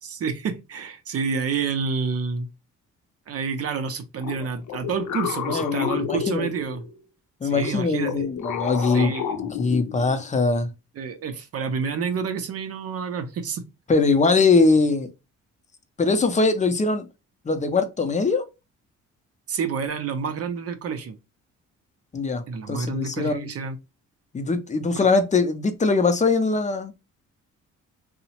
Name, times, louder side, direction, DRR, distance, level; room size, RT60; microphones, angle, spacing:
voice 1, 0.0-2.5 3.3-6.8 7.4-8.2 8.8-9.5 11.0-13.7 19.5-21.2 22.5-23.8 25.0-25.1, right 5 dB, 55° right, 0.5 m, -29 dB
sound 1, 4.2-7.0 7.6-10.3, left 8 dB, 80° left, 0.6 m, -31 dB
voice 2, 5.5-6.5 7.4-9.1 9.6-10.7 13.9-15.1 16.0-17.1 17.4-18.5 22.1-23.5 24.3-26.9, left 3 dB, 25° left, 0.5 m, -22 dB
2.8 x 2.1 x 2.8 m
cardioid pair, 90°, 30 cm